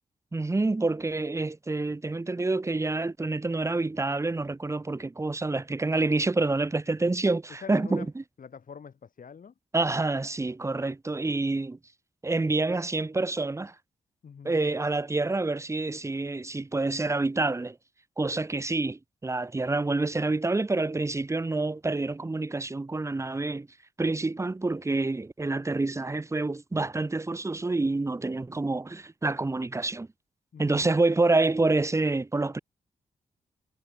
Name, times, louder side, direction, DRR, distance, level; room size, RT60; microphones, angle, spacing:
voice 1, 0.3-8.2 9.7-11.8 12.2-13.7 14.4-17.8 18.2-23.7 24.0-30.1 30.6-32.6, right 2 dB, 20° right, 0.7 m, -27 dB
voice 2, 7.6-8.1 8.4-9.5 14.2-14.6 30.5-30.9, left 6 dB, 60° left, 4.3 m, -44 dB
supercardioid pair, 40°, 15 cm